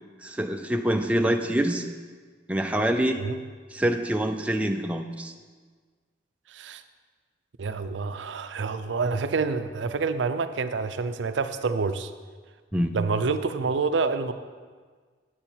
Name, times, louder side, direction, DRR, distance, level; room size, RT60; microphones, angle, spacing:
voice 1, 0.2-1.9 2.5-3.2 3.7-5.3 12.7-13.0, right 1 dB, 5° right, 4 dB, 0.4 m, -25 dB
voice 2, 6.5-6.8 7.6-12.1 12.9-14.3, right 4 dB, 85° right, 10 dB, 0.5 m, -27 dB
8.7 x 8.7 x 4.4 m, 1.5 s
head